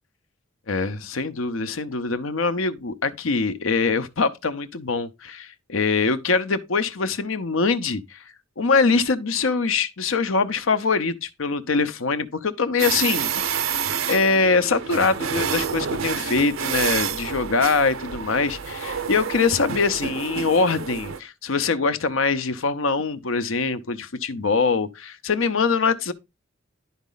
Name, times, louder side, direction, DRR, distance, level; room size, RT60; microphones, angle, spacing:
voice 1, 0.7-8.2 8.6-13.3 14.1-26.1, left 4 dB, 75° left, 0.8 m, -23 dB
sound 1, 12.8-21.2, right 7 dB, 85° right, 0.7 m, -28 dB
11.0 x 4.1 x 3.9 m
head